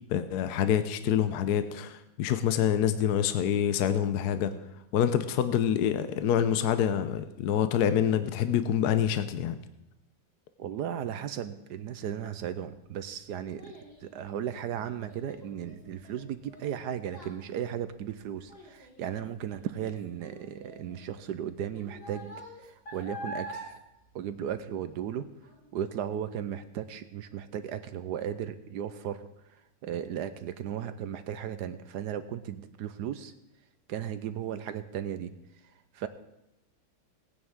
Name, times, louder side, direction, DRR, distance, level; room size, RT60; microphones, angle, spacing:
voice 1, 0.1-4.5 4.9-9.6, left 9 dB, 65° left, 11 dB, 1.1 m, -26 dB
voice 2, 10.6-13.7 14.0-22.3 22.6-23.7 24.1-25.3 25.7-33.3 33.9-35.3 35.9-36.1, right 9 dB, 70° right, 11 dB, 1.1 m, -36 dB
Child speech kid speaking, 12.8-25.1 25.4-25.8 26.3-26.4, equal, 30° left, 3.1 m, -47 dB
18.5 x 9.6 x 3.7 m, 0.90 s
omnidirectional pair, 2.1 m